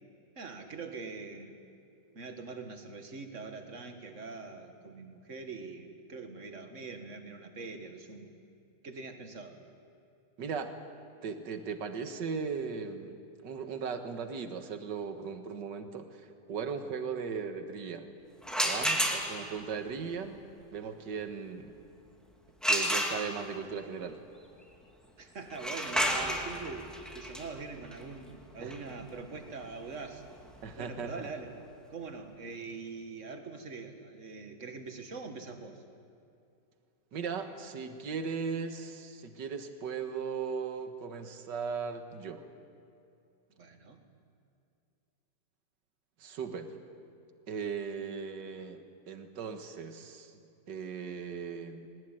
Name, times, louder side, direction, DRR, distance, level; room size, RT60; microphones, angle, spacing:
voice 1, 0.4-1.6 2.1-8.3 8.8-9.6 25.2-30.2 30.8-31.6 31.9-35.8 43.6-44.0, right 4 dB, 40° right, 5 dB, 2.1 m, -43 dB
voice 2, 10.4-10.7 11.2-13.1 13.4-18.1 18.6-20.4 20.7-21.7 22.7-24.2 28.6-28.7 30.6-31.3 37.1-42.5 46.2-46.8 47.5-50.3 50.7-51.9, right 5 dB, 70° right, 7 dB, 2.0 m, -37 dB
sound 1, 18.4-19.6 22.6-23.6 25.5-31.2, equal, ahead, 2.5 m, -32 dB
22.0 x 19.5 x 9.2 m, 2.6 s
omnidirectional pair, 2.0 m